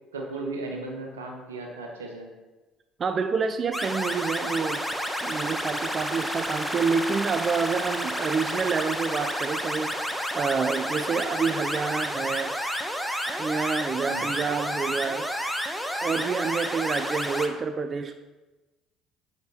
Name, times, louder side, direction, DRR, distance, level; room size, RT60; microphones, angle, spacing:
voice 1, 0.1-2.3 14.0-14.5, right 2 dB, 85° right, 1 dB, 1.5 m, -36 dB
voice 2, 3.0-4.9 5.2-12.6 13.0-15.3 16.0-18.1, right 5 dB, 40° right, 9 dB, 0.5 m, -28 dB
sound 1, 3.7-17.5, equal, ahead, 1.2 m, -30 dB
8.7 x 7.4 x 4.4 m, 1.2 s
hypercardioid pair, 55°, 0 cm